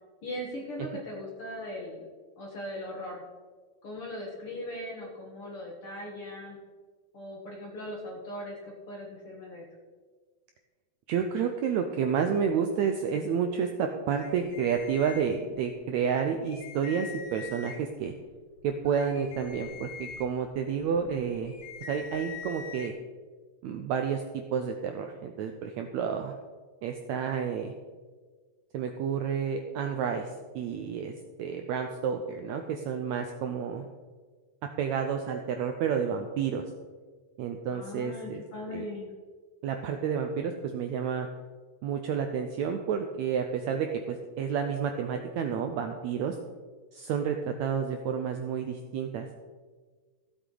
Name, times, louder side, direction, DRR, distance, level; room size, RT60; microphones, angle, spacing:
voice 1, 0.2-2.1 2.4-3.2 3.8-6.6 7.1-9.7 37.7-39.1, left 1 dB, 50° left, -1 dB, 1.9 m, -39 dB
voice 2, 11.1-18.1 18.6-21.5 21.9-22.9 23.6-24.2 24.5-26.3 26.8-27.7 28.7-31.1 31.4-33.8 34.8-36.6 37.4-38.4 38.7-38.8 39.6-41.3 41.8-46.4 46.9-49.5, right 7 dB, 85° right, 5 dB, 1.6 m, -30 dB
sound 1, 14.1-15.7 16.1-16.2 16.5-18.0 18.5-22.9, left 6 dB, 70° left, 2.5 m, -44 dB
15.0 x 8.1 x 3.9 m, 1.5 s
omnidirectional pair, 3.9 m